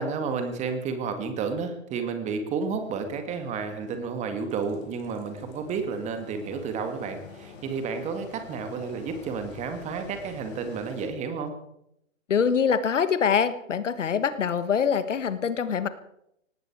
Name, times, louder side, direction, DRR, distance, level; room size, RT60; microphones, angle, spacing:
voice 1, 0.0-11.5, right 5 dB, 15° right, 7 dB, 2.0 m, -31 dB
Engine, 2.7-11.1, left 5 dB, 35° left, 4.5 m, -48 dB
voice 2, 12.3-15.9, left 7 dB, 65° left, 13 dB, 1.5 m, -24 dB
18.5 x 16.5 x 4.7 m, 0.77 s
figure-of-eight pair, 135°, 39 cm